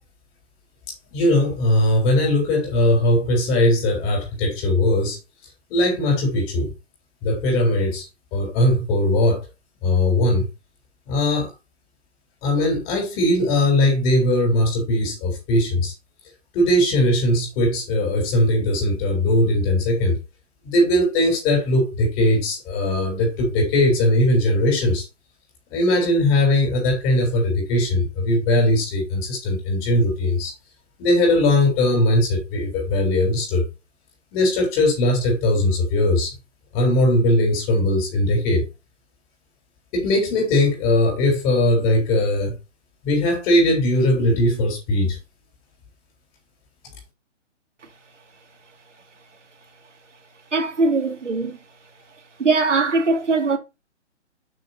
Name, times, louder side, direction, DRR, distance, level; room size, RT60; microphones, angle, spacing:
voice 1, 1.1-5.2 5.7-6.7 7.2-8.1 8.3-9.4 9.8-10.4 11.1-11.5 12.4-15.9 16.5-20.2 20.6-25.0 25.7-30.5 31.0-33.6 34.3-36.3 36.7-38.6 39.9-42.6 43.0-45.2, left 1 dB, 25° left, 3.9 m, -19 dB
voice 2, 50.5-51.6 52.4-53.6, right 3 dB, 75° right, 2.3 m, -20 dB
6.6 x 6.1 x 4.2 m
figure-of-eight pair, 145°, 36 cm